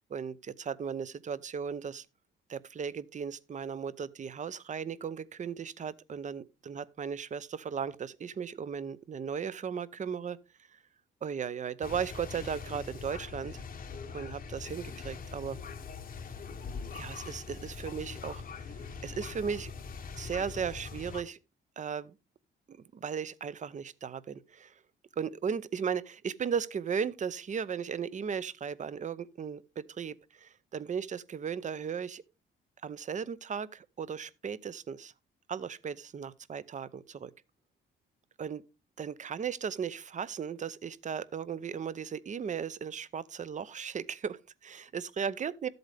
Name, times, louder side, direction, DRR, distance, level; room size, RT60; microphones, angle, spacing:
voice 1, 0.1-2.1 2.5-10.4 11.2-13.6 14.1-15.6 16.9-19.7 20.2-21.4 21.8-22.2 22.7-24.7 25.2-32.2 32.8-35.1 35.5-37.3 38.4-38.6 39.0-45.7, right 7 dB, 40° right, 0.7 m, -36 dB
sound 1, 11.8-21.2, left 5 dB, 45° left, 1.0 m, -42 dB
13.0 x 7.9 x 3.4 m
cardioid pair, 90°, 20 cm